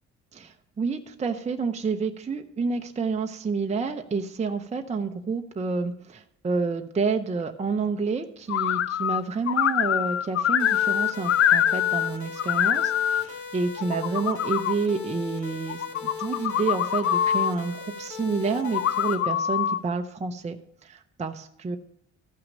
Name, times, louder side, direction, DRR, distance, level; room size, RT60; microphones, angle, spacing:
voice 1, 0.3-20.6 20.8-21.8, right 4 dB, 25° right, 5 dB, 0.6 m, -29 dB
sound 1, 8.5-9.2 9.5-12.1 12.4-13.2 13.8-14.8 15.7-17.5 18.6-19.8, left 10 dB, 50° left, 0.5 m, -24 dB
sound 2, 10.6-19.1, left 6 dB, 70° left, 2.3 m, -38 dB
13.5 x 5.8 x 5.2 m, 0.77 s
cardioid pair, 90°, 30 cm